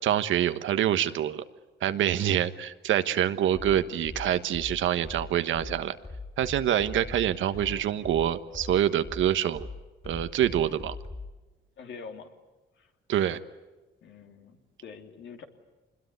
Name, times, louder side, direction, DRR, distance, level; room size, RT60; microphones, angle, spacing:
voice 1, 0.0-1.4 1.8-6.0 6.4-9.7 10.0-11.0 13.1-13.4, right 10 dB, 75° right, 11 dB, 1.3 m, -26 dB
sound 1, 3.5-11.4, left 3 dB, 30° left, 3.7 m, -41 dB
voice 2, 11.8-12.3 12.8-12.9 14.0-15.4, left 5 dB, 70° left, 4 dB, 3.0 m, -45 dB
25.5 x 21.5 x 9.6 m, 1.2 s
cardioid pair, 90°, 20 cm